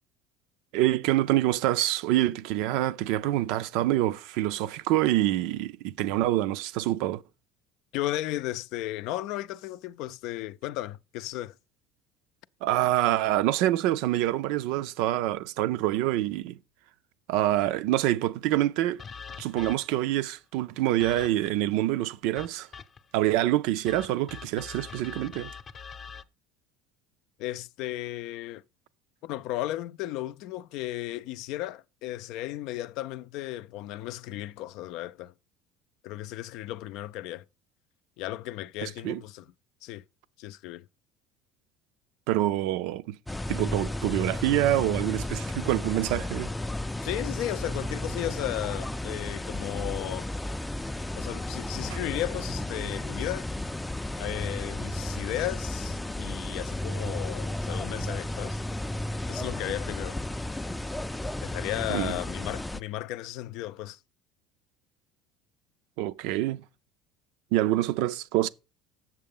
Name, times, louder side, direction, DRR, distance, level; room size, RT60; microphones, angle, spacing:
voice 1, 0.7-7.2 12.6-16.6 17.3-19.0 19.4-22.7 23.1-25.5 38.8-39.2 42.3-43.2 43.5-46.5 61.9-62.2 66.0-66.6 67.5-68.5, right 14 dB, 75° right, 0.5 m, -26 dB
voice 2, 7.9-11.5 27.4-28.6 29.2-35.3 36.0-37.5 38.2-39.5 39.8-40.0 40.4-40.9 47.0-50.3 51.2-53.5 54.2-58.6 59.3-60.2 61.4-64.0, left 15 dB, 70° left, 0.4 m, -35 dB
sound 1, 19.0-20.1 21.0-21.6 22.3-23.2 23.9-26.2, left 6 dB, 35° left, 0.7 m, -44 dB
sound 2, 43.3-62.8, left 1 dB, 10° left, 0.4 m, -33 dB
7.4 x 6.7 x 5.3 m
supercardioid pair, 115°, 0 cm